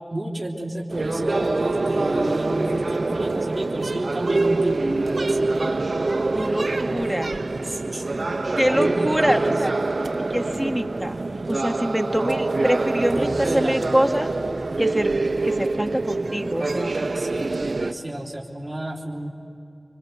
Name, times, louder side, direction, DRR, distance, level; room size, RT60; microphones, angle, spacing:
voice 1, 0.1-5.5 7.6-8.1 8.7-9.6 13.1-13.9 17.1-19.3, right 1 dB, 35° right, -3 dB, 3.5 m, -31 dB
sound 1, 0.9-17.9, right 3 dB, 80° right, 1.0 m, -25 dB
voice 2, 6.3-7.4 8.6-9.7 10.3-11.2 11.5-14.3 14.8-15.1 15.4-16.9, equal, ahead, 5 dB, 1.8 m, -25 dB
27.0 x 25.5 x 8.0 m, 2.5 s
wide cardioid pair, 40°, 0 cm